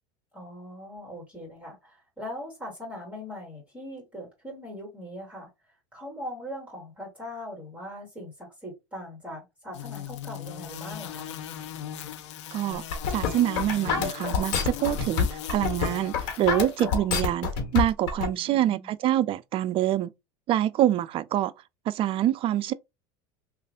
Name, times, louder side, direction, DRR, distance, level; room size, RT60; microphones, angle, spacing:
voice 1, 0.3-5.5 5.9-11.3 18.3-18.9, left 1 dB, 10° right, 2.1 m, -40 dB
sound 1, 9.7-16.9, left 10 dB, 85° left, 0.5 m, -39 dB
voice 2, 12.5-12.8 13.1-20.1 20.5-21.5 21.9-22.7, right 12 dB, 40° right, 0.3 m, -26 dB
sound 2, 12.7-18.3, left 6 dB, 55° left, 1.3 m, -27 dB
3.1 x 2.4 x 3.6 m
hypercardioid pair, 100°, 15 cm